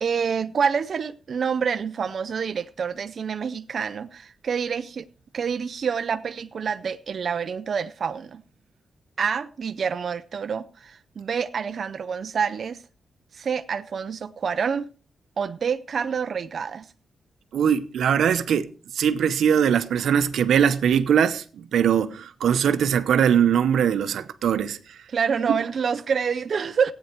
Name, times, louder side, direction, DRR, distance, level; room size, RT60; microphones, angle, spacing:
voice 1, 0.0-5.1 5.3-8.4 9.2-12.8 13.3-14.9 15.4-16.9 25.1-26.9, right 6 dB, 60° right, 0.5 m, -27 dB
voice 2, 17.5-24.8, right 8 dB, 90° right, 0.8 m, -21 dB
16.0 x 9.1 x 4.5 m
cardioid pair, 95°, 0 cm